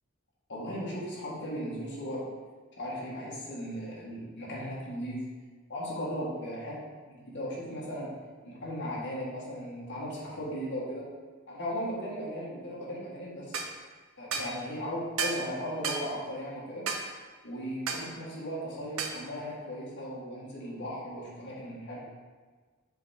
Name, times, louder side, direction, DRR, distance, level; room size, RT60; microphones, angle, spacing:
voice 1, 0.5-2.3 2.8-5.2 5.7-6.8 7.1-8.1 8.4-11.0 11.5-13.5 14.2-16.8 17.4-22.0, equal, 55° left, -6 dB, 1.7 m, -37 dB
sound 1, 13.5-13.7 14.3-14.5 15.2-15.4 15.8-16.1 16.9-17.1 17.9-18.1 19.0-19.2, right 5 dB, 70° right, 0.6 m, -32 dB
6.6 x 3.6 x 4.3 m, 1.5 s
head